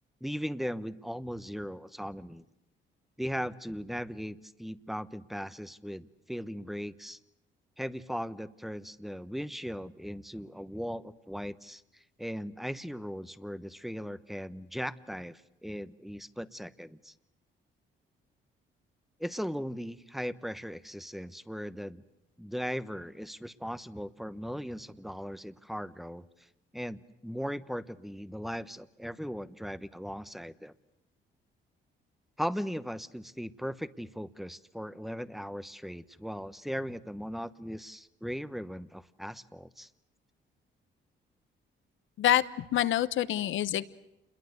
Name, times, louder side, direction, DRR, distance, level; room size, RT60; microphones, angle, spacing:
voice 1, 0.2-2.5 3.2-7.2 7.8-17.1 19.2-22.0 22.4-26.3 26.7-30.7 32.4-39.9, equal, ahead, 14 dB, 1.1 m, -38 dB
voice 2, 42.2-43.8, left 12 dB, 75° left, 15 dB, 1.1 m, -26 dB
28.0 x 21.5 x 8.1 m, 0.88 s
cardioid pair, 90°, 20 cm